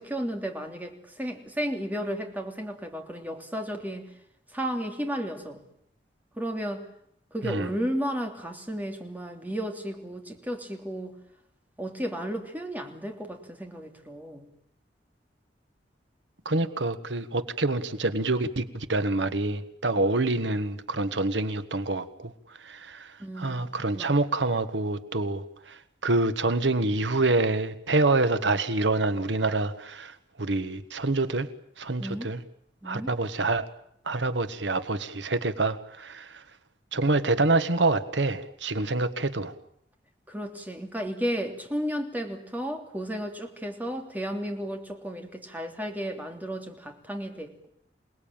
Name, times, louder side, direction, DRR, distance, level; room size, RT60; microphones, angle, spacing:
voice 1, 0.0-4.1 4.5-5.6 6.4-6.9 7.3-11.1 11.8-14.5 23.2-23.7 23.9-24.1 32.0-32.3 32.8-33.1 40.3-47.7, equal, 10° right, 4 dB, 3.1 m, -33 dB
voice 2, 16.4-22.3 22.6-31.5 31.8-32.4 32.8-33.6 34.1-36.4 36.9-39.5, right 2 dB, 85° right, 11 dB, 1.5 m, -27 dB
27.5 x 19.5 x 8.9 m, 0.73 s
head